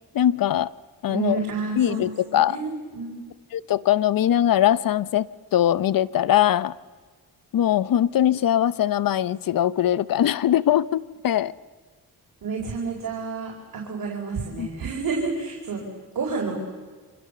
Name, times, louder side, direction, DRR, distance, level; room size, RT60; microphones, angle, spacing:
voice 1, 0.1-0.7 1.0-1.4 1.8-2.6 3.5-6.7 7.5-11.5 14.6-14.7, left 11 dB, 70° left, 18 dB, 0.8 m, -21 dB
voice 2, 1.1-2.1 2.4-3.2 12.4-15.8 16.1-16.6, right 4 dB, 65° right, -1 dB, 4.7 m, -29 dB
27.5 x 25.5 x 6.9 m, 1.5 s
cardioid pair, 105°, 36 cm